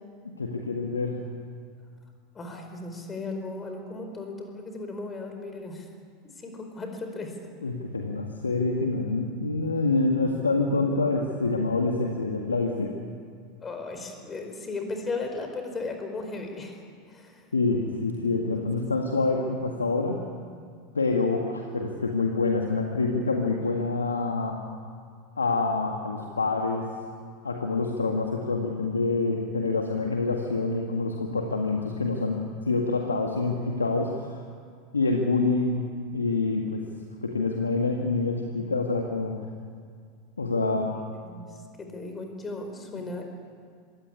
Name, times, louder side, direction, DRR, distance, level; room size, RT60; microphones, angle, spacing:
voice 1, 0.4-1.2 7.6-13.0 17.5-20.2 20.9-24.6 25.4-26.9 27.4-34.4 34.9-36.8 37.2-39.4 40.4-40.9 42.9-43.0, left 3 dB, 85° left, 2 dB, 1.9 m, -26 dB
voice 2, 2.3-5.9 6.4-7.4 13.6-16.8 17.1-17.5 18.6-18.7 40.6-40.9 41.3-43.2, left 3 dB, 20° left, 4 dB, 4.8 m, -36 dB
25.5 x 16.5 x 9.9 m, 2.1 s
figure-of-eight pair, 85°, 0 cm